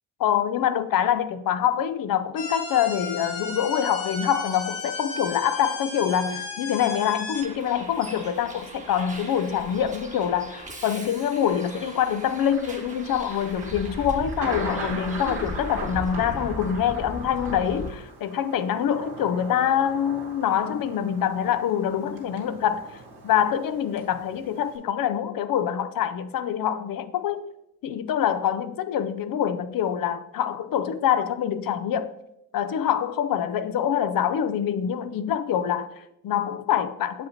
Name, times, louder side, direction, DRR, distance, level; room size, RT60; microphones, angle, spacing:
voice 1, 0.2-22.9 23.2-27.5 27.8-32.1 32.5-37.3, left 9 dB, 55° left, 0.6 m, -25 dB
sound 1, 2.4-7.4, left 3 dB, 75° left, 1.7 m, -34 dB
Bus, 7.3-17.9, equal, 15° right, 1.2 m, -38 dB
Thunder, 12.5-24.8, right 3 dB, 65° right, 2.2 m, -39 dB
7.2 x 5.2 x 2.9 m
supercardioid pair, 55°, 42 cm